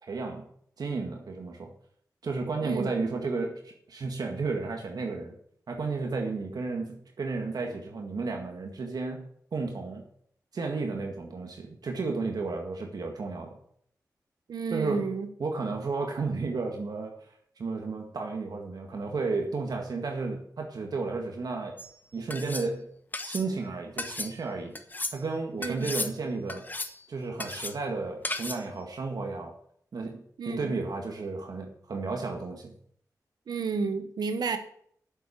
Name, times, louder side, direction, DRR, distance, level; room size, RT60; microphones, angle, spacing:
voice 1, 0.0-0.5 0.8-1.7 2.2-5.4 5.7-10.0 10.5-13.6 14.7-15.1 15.4-17.2 17.6-21.8 22.1-22.9 23.2-24.7 25.1-26.7 27.1-29.5 29.9-32.8, right 3 dB, 75° right, 2 dB, 1.9 m, -33 dB
voice 2, 14.5-15.3 25.6-25.9 30.4-30.7 33.5-34.6, right 5 dB, 90° right, 9 dB, 1.2 m, -31 dB
sound 1, 21.8-21.9 22.3-22.7 23.1-23.5 24.0-24.3 24.7-25.2 25.6-26.1 26.5-27.0 27.4-27.7 28.2-28.6, left 2 dB, 25° left, 1.2 m, -34 dB
8.1 x 7.4 x 8.5 m, 0.63 s
cardioid pair, 60°, 7 cm